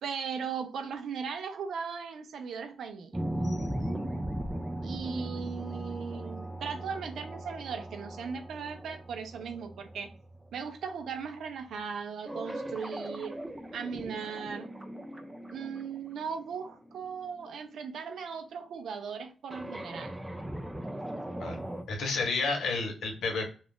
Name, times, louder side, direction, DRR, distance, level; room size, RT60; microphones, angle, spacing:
voice 1, 0.0-3.2 4.8-10.1 10.5-13.4 13.7-14.7 15.5-20.2, right 6 dB, 70° right, 0.5 m, -38 dB
sound 1, 3.1-10.6 12.3-17.8 19.5-21.8, right 1 dB, 10° right, 0.3 m, -38 dB
voice 2, 21.9-23.5, left 3 dB, 70° left, 1.0 m, -31 dB
2.4 x 2.4 x 3.4 m
wide cardioid pair, 180°, 0 cm